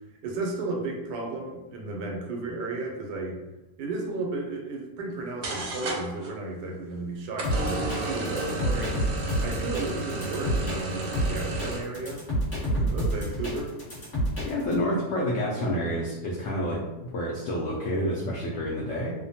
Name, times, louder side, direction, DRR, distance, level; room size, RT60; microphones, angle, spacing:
voice 1, 0.2-3.4 3.8-9.1 9.4-12.2 12.7-13.7, right 2 dB, 90° right, 0 dB, 1.2 m, -34 dB
sound 1, 5.1-5.2 5.4-6.3 7.3-11.8, right 2 dB, 70° right, 1.0 m, -32 dB
sound 2, 7.4-14.8, equal, 35° left, 1.2 m, -29 dB
voice 2, 14.4-19.1, equal, 80° left, -4 dB, 0.6 m, -29 dB
2.8 x 2.1 x 2.7 m, 1.1 s
omnidirectional pair, 1.8 m